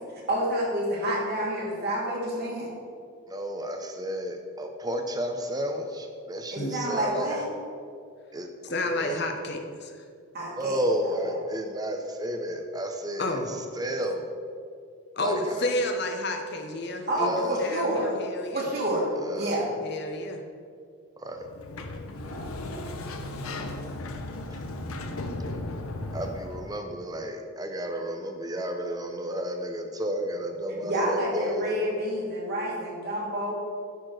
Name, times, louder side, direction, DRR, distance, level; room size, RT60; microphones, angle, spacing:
voice 1, 0.3-2.7 6.5-7.5 10.3-10.8 11.0-11.2 17.1-18.1 18.5-19.1 19.3-19.7 22.2-23.8 30.8-33.5, right 1 dB, 50° right, -4 dB, 2.3 m, -29 dB
voice 2, 3.3-7.4 8.3-8.5 9.0-9.2 10.6-13.4 13.8-14.2 15.2-15.4 17.2-17.6 19.2-19.6 21.2-21.4 24.5-24.6 26.1-31.8, equal, 20° right, 4 dB, 0.7 m, -32 dB
voice 3, 8.6-10.0 13.2-13.5 15.1-18.7 19.8-20.4, left 1 dB, 50° left, 4 dB, 0.9 m, -31 dB
Sliding door, 21.4-26.7, left 2 dB, 90° left, 0.8 m, -36 dB
10.0 x 4.3 x 6.5 m, 2.2 s
head